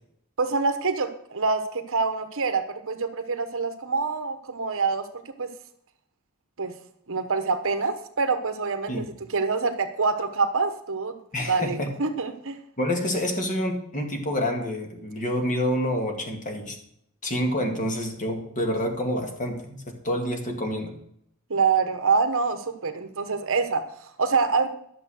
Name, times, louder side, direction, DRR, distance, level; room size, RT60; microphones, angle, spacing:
voice 1, 0.4-5.1 5.4-5.5 6.6-6.7 7.1-12.6 21.5-24.7, right 4 dB, 65° right, 8 dB, 1.1 m, -26 dB
voice 2, 11.3-11.9 12.8-16.8 17.2-20.9, equal, 35° left, 3 dB, 2.0 m, -28 dB
11.5 x 6.8 x 6.4 m, 0.71 s
head